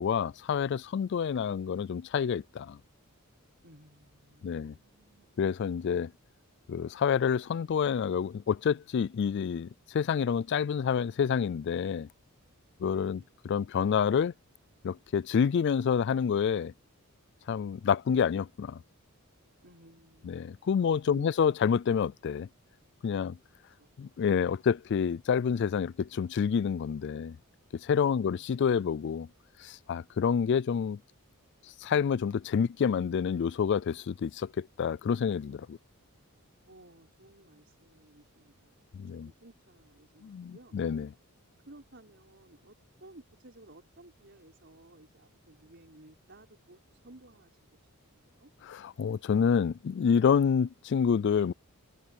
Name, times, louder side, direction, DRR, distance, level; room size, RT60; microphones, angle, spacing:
voice 1, 0.0-2.8 4.4-4.8 5.4-6.1 6.7-12.1 12.8-14.3 14.8-16.7 17.5-18.8 20.2-22.5 23.0-23.4 24.0-27.4 27.7-29.3 29.6-31.0 31.8-35.8 38.9-39.3 40.2-41.1 48.6-51.5, left 7 dB, 50° left, 0.3 m, -28 dB
voice 2, 3.6-5.6 13.1-13.3 19.6-20.6 21.1-21.3 23.8-24.1 28.1-28.6 36.7-40.8 41.7-47.6 48.1-48.5, right 1 dB, 50° right, 5.4 m, -56 dB
head